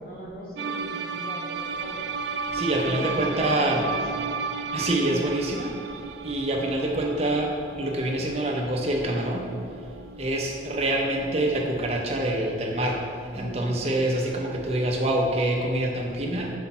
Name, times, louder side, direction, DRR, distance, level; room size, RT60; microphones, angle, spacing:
voice 1, 0.0-2.1 2.5-4.3 13.3-13.7, equal, 55° left, -4 dB, 1.5 m, -39 dB
sound 1, 0.6-11.5, right 5 dB, 70° right, 0.3 m, -34 dB
voice 2, 2.5-3.9 4.7-5.8 6.2-9.5 10.2-13.0 13.3-16.5, right 1 dB, 35° right, 0 dB, 0.6 m, -26 dB
7.0 x 4.4 x 4.2 m, 2.3 s
head